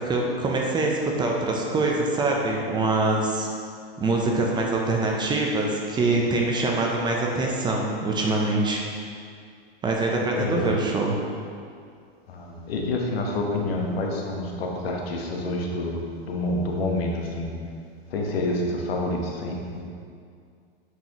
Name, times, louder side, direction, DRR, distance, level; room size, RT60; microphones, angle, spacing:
voice 1, 0.0-3.5 4.0-8.8 9.8-11.1, right 2 dB, 15° right, -1 dB, 0.6 m, -24 dB
voice 2, 10.3-10.9 12.3-17.6 18.1-19.8, left 2 dB, 75° left, 0 dB, 1.2 m, -28 dB
9.0 x 4.6 x 3.0 m, 2.2 s
hypercardioid pair, 130°, 30 cm